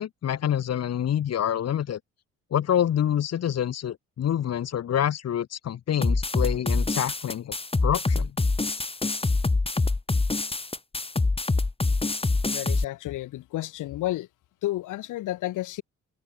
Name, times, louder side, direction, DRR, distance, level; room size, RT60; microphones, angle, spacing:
voice 1, 0.0-2.0 2.5-7.5 7.8-8.4, left 10 dB, 55° left, 1.5 m, -27 dB
sound 1, 6.0-12.8, left 3 dB, 20° left, 2.9 m, -25 dB
voice 2, 12.5-14.3 14.6-15.8, left 15 dB, 90° left, 3.5 m, -31 dB
cardioid pair, 90°, 30 cm